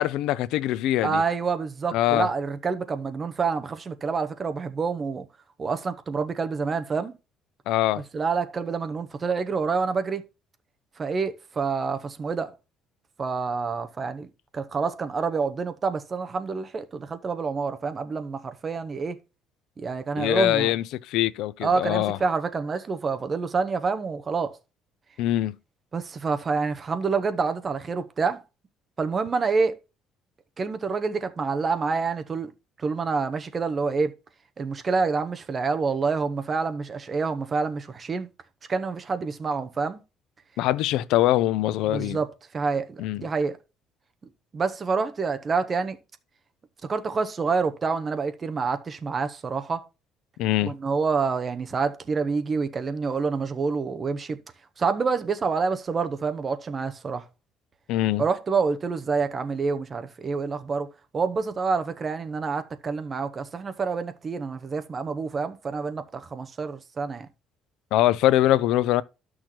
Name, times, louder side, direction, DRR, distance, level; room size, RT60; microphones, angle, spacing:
voice 1, 0.0-1.2 1.9-2.3 7.7-8.0 20.2-22.2 25.2-25.6 40.6-42.2 43.0-43.3 50.4-50.7 57.9-58.2 67.9-69.0, left 14 dB, 80° left, 0.4 m, -23 dB
voice 2, 1.0-5.3 5.6-7.1 7.9-10.2 11.0-12.5 13.2-19.2 19.8-20.7 21.6-24.6 25.9-28.4 29.0-29.8 30.6-32.5 32.8-34.1 34.6-38.3 38.7-40.0 41.9-42.3 42.5-43.6 44.5-46.0 46.8-49.9 50.6-54.4 54.8-57.2 58.2-67.3, right 4 dB, 25° right, 0.8 m, -27 dB
12.0 x 6.2 x 2.9 m
cardioid pair, 165°, 0 cm